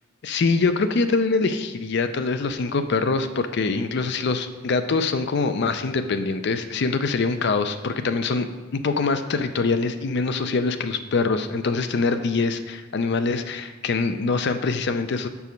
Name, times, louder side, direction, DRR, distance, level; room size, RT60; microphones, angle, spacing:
voice 1, 0.2-8.5 8.7-15.3, left 4 dB, 55° left, 9 dB, 0.5 m, -24 dB
6.9 x 4.7 x 5.2 m, 1.2 s
head